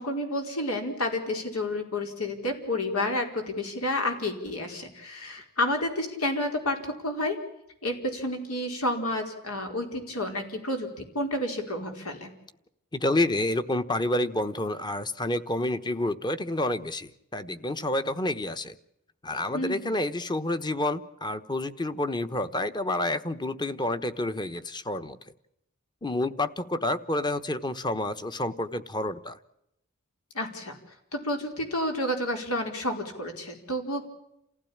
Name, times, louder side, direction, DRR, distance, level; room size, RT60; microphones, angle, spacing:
voice 1, 0.0-7.4 7.8-10.9 11.1-12.3 19.5-19.9 30.3-30.8 31.1-34.0, left 1 dB, 85° left, 4 dB, 4.7 m, -30 dB
voice 2, 12.9-18.7 19.2-25.2 26.0-29.4, left 1 dB, 20° left, 11 dB, 1.1 m, -29 dB
29.0 x 16.0 x 8.8 m, 0.83 s
head